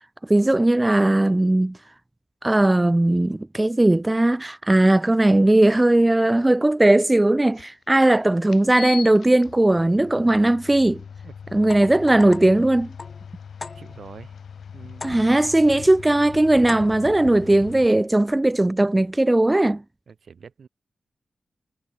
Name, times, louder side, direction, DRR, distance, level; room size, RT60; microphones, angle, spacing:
voice 1, 0.3-1.8 2.4-11.0 11.5-12.9 15.0-19.8, right 1 dB, 20° right, 0.3 m, -18 dB
sound 1, 7.6-7.7 8.5-17.9, left 7 dB, 85° left, 4.3 m, -40 dB
sound 2, 11.6-14.2 15.0-15.6 16.7-17.2, left 3 dB, 45° left, 3.5 m, -40 dB
voice 2, 13.7-14.4 14.7-15.4 20.1-20.7, right 6 dB, 75° right, 4.8 m, -45 dB
cardioid pair, 70°, 0 cm